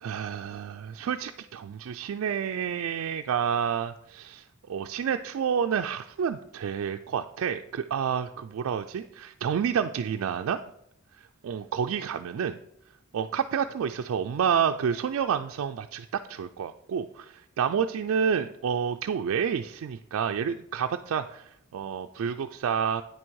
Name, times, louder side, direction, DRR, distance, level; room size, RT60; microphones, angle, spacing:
voice 1, 0.0-10.6 11.2-12.6 13.1-23.0, right 7 dB, 80° right, 6 dB, 0.3 m, -29 dB
9.0 x 6.2 x 4.6 m, 0.77 s
head